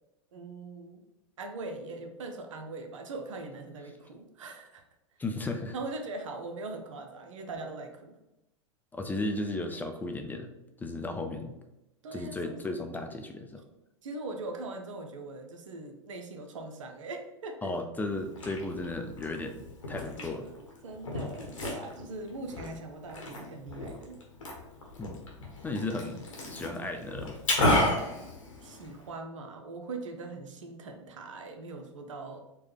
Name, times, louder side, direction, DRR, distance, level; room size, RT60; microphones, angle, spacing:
voice 1, 0.3-1.0 1.4-4.8 5.7-8.2 12.0-12.9 14.0-17.7 20.8-24.2 28.6-32.4, right 3 dB, 75° right, 5 dB, 0.7 m, -41 dB
voice 2, 5.2-5.7 8.9-10.5 10.8-11.5 12.1-13.6 17.6-20.5 25.0-25.3 25.6-27.4, left 2 dB, 10° left, 5 dB, 0.4 m, -35 dB
Liquid, 18.1-29.1, left 1 dB, 85° left, 1.1 m, -33 dB
4.4 x 2.2 x 3.3 m, 0.92 s
hypercardioid pair, 95°, 16 cm